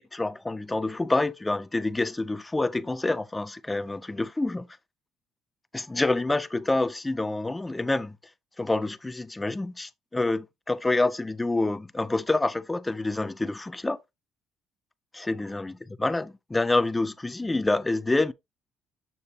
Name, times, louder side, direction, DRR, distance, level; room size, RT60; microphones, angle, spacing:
voice 1, 0.1-4.7 5.7-8.2 8.6-14.0 15.1-18.3, left 2 dB, 10° left, 0.5 m, -27 dB
7.0 x 6.5 x 2.8 m
cardioid pair, 110°, 0 cm